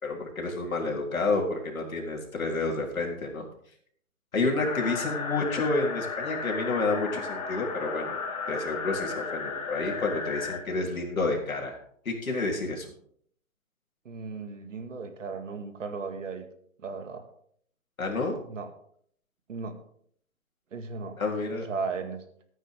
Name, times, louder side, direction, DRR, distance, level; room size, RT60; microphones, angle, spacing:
voice 1, 0.0-3.4 4.3-8.2 8.5-11.8 12.1-12.9 18.0-18.4 21.2-21.7, left 3 dB, 80° left, 0 dB, 3.8 m, -29 dB
sound 1, 4.6-10.6, left 4 dB, 30° left, 1.8 m, -34 dB
voice 2, 14.1-16.4 16.8-17.3 18.5-18.7 19.5-19.8 20.7-21.2 21.5-22.2, right 4 dB, 65° right, 7 dB, 2.1 m, -36 dB
15.5 x 9.3 x 3.7 m, 0.63 s
hypercardioid pair, 155°, 41 cm